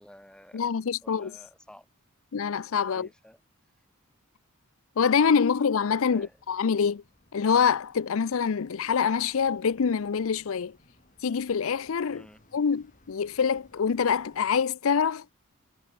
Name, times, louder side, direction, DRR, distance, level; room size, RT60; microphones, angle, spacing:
voice 1, 0.0-0.7 1.0-1.9 2.9-3.4 6.1-6.4 12.1-12.4, equal, 5° left, 3.0 m, -51 dB
voice 2, 0.5-1.3 2.3-3.1 5.0-7.0 7.3-10.8 11.2-12.3 12.5-15.3, left 6 dB, 65° left, 0.5 m, -25 dB
sound 1, 5.1-14.6, left 1 dB, 35° left, 4.9 m, -63 dB
head